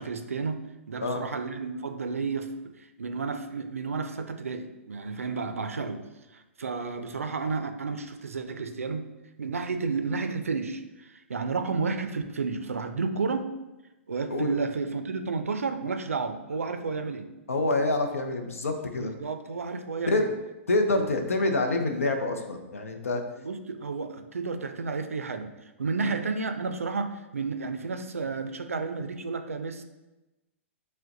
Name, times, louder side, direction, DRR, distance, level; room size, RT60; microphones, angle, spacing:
voice 1, 0.0-6.0 6.3-9.1 9.4-13.5 14.1-17.3 19.0-20.3 20.9-21.1 23.1-29.8, right 4 dB, 90° right, 8 dB, 0.4 m, -32 dB
voice 2, 17.5-19.1 20.1-20.2 20.7-23.2 26.0-26.1, left 2 dB, 85° left, 5 dB, 0.5 m, -26 dB
6.3 x 2.1 x 2.6 m, 1.0 s
hypercardioid pair, 120°, 7 cm